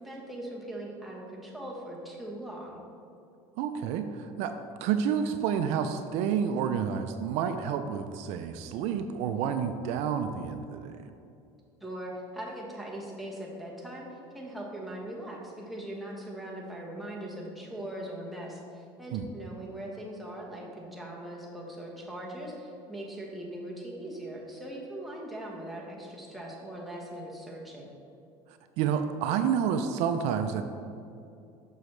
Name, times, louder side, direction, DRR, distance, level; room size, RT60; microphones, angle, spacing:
voice 1, 0.0-2.8 11.8-27.9, right 1 dB, ahead, -4 dB, 1.2 m, -40 dB
voice 2, 3.6-11.0 19.1-19.2 28.8-30.6, right 7 dB, 70° right, 8 dB, 0.4 m, -29 dB
6.6 x 6.2 x 3.2 m, 2.6 s
cardioid pair, 120°, 12 cm